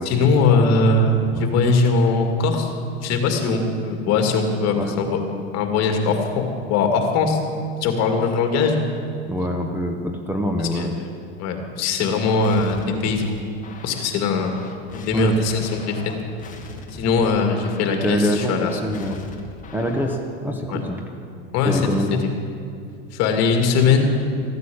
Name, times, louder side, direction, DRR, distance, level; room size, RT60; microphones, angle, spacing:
voice 1, 0.1-2.7 3.0-5.2 5.5-6.4 6.7-7.4 7.8-8.8 10.7-11.1 11.4-13.4 13.8-14.5 14.9-16.0 16.9-18.7 20.7-20.8 21.5-21.8 23.1-24.1, left 4 dB, 50° left, 4 dB, 2.3 m, -20 dB
voice 2, 9.3-11.0 15.1-15.4 17.9-19.2 19.7-21.0 21.6-22.2, equal, 5° right, 3 dB, 1.0 m, -25 dB
sound 1, 12.4-20.3, left 3 dB, 25° left, 1.6 m, -40 dB
15.0 x 9.4 x 8.5 m, 2.5 s
supercardioid pair, 125°, 34 cm